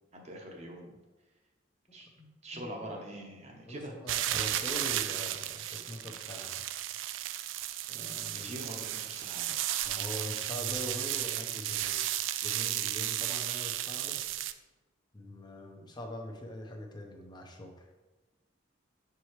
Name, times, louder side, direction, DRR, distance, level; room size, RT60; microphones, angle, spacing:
voice 1, 0.1-0.9 1.9-2.1 2.4-3.9 8.4-9.7, right 1 dB, 35° right, 1 dB, 1.0 m, -43 dB
voice 2, 2.2-3.0 3.7-6.6 7.9-8.6 9.8-12.1 12.4-14.2 15.1-17.9, left 1 dB, 25° left, 2 dB, 0.8 m, -43 dB
sound 1, 4.1-14.5, right 13 dB, 85° right, 0.3 m, -34 dB
6.9 x 4.7 x 3.1 m, 1.2 s
head